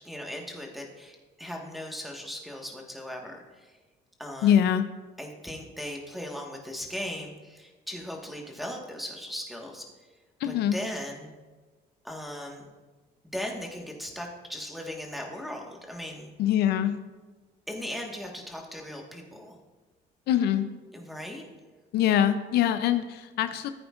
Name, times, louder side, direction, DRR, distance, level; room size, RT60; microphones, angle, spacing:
voice 1, 0.0-3.8 4.2-4.6 5.2-9.8 10.4-11.3 12.0-12.7 13.3-16.3 17.7-19.6 20.9-21.5, left 1 dB, ahead, 0 dB, 1.5 m, -38 dB
voice 2, 4.4-4.9 10.4-10.8 16.4-17.0 20.3-20.7 21.9-23.7, left 10 dB, 75° left, 10 dB, 0.5 m, -23 dB
14.5 x 8.7 x 2.5 m, 1.3 s
cardioid pair, 110°, 17 cm